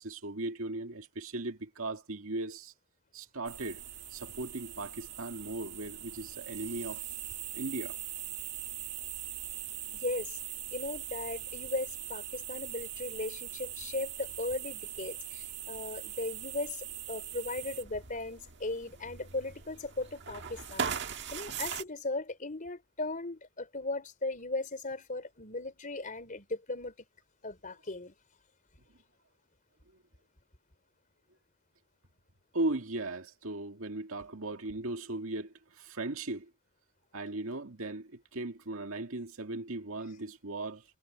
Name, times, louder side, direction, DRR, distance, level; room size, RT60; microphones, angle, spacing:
voice 1, 0.0-2.7 3.1-3.8 4.1-7.0 7.5-8.0 32.5-36.5 37.1-40.8, right 2 dB, 75° right, 2.1 m, -37 dB
sound 1, 3.4-21.8, right 10 dB, 55° right, 1.7 m, -41 dB
voice 2, 9.9-10.4 10.7-20.9 21.3-26.9 27.4-28.1, left 2 dB, 40° left, 4.0 m, -37 dB
head